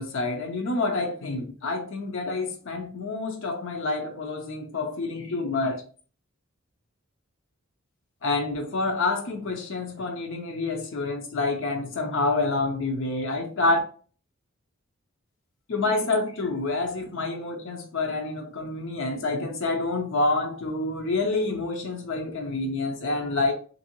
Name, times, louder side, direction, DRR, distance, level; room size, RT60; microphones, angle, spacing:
voice 1, 0.0-5.8 8.2-13.8 15.7-23.5, left 3 dB, 60° left, 0.5 m, -28 dB
2.9 x 2.6 x 2.8 m
head